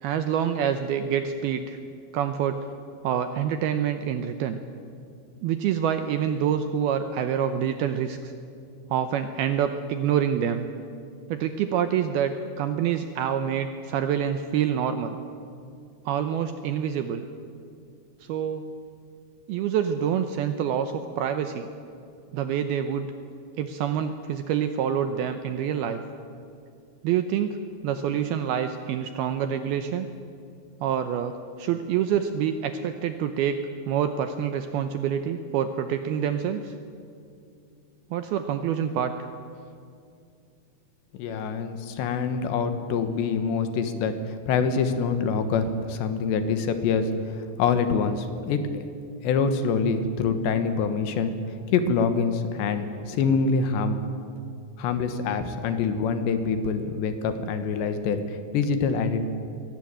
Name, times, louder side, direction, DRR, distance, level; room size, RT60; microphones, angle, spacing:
voice 1, 0.0-1.8 2.1-2.6 3.0-4.6 5.4-8.2 8.9-10.7 11.3-15.2 16.1-17.2 18.2-18.6 19.5-21.7 22.3-23.1 23.6-26.0 27.0-27.6 27.8-30.1 30.8-36.7 38.1-39.3, right 9 dB, 80° right, 8 dB, 2.3 m, -26 dB
voice 2, 41.2-48.6 49.2-51.3 51.7-54.0 54.8-59.2, left 5 dB, 75° left, 9 dB, 3.5 m, -25 dB
22.5 x 18.0 x 8.9 m, 2.4 s
omnidirectional pair, 5.3 m